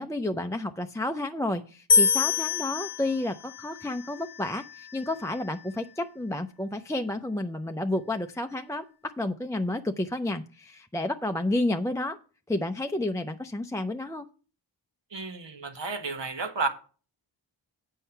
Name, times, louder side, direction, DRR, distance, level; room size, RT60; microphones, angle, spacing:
voice 1, 0.0-12.2 12.5-14.3, left 1 dB, 5° left, 0.4 m, -31 dB
sound 1, 1.9-5.1, left 5 dB, 55° left, 0.8 m, -27 dB
voice 2, 15.1-16.7, right 3 dB, 65° right, 1.3 m, -31 dB
8.3 x 5.5 x 5.7 m
wide cardioid pair, 75°, 47 cm